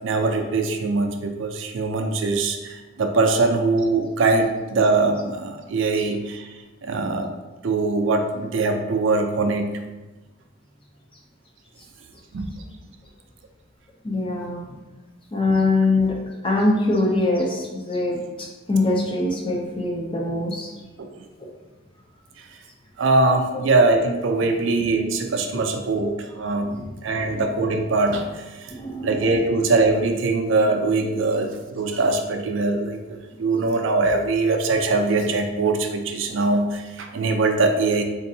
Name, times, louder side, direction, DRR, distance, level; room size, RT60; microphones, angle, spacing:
voice 1, 0.0-7.3 7.6-9.7 12.3-12.5 21.0-21.1 23.0-26.8 27.0-28.7 29.0-38.0, right 3 dB, 70° right, 5 dB, 0.4 m, -22 dB
voice 2, 14.0-14.6 15.3-16.2 16.4-20.7 25.5-25.6 26.6-26.9 28.7-29.2, left 2 dB, 25° left, -1 dB, 0.5 m, -23 dB
4.0 x 2.6 x 2.7 m, 1.2 s
head